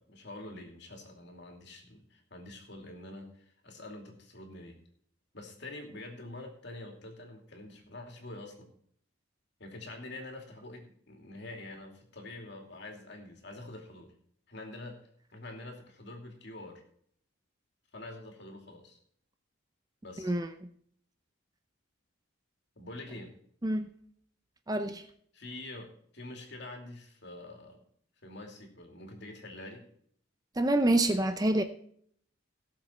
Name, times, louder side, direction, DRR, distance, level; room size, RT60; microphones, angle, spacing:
voice 1, 0.0-4.8 5.3-8.7 9.6-14.1 14.5-15.0 15.3-16.8 17.9-19.0 20.0-20.3 22.8-23.3 25.3-27.8 28.2-29.8, left 2 dB, 55° left, 2.8 m, -46 dB
voice 2, 24.7-25.0 30.6-31.6, right 1 dB, 20° right, 0.6 m, -26 dB
17.5 x 7.2 x 4.4 m
head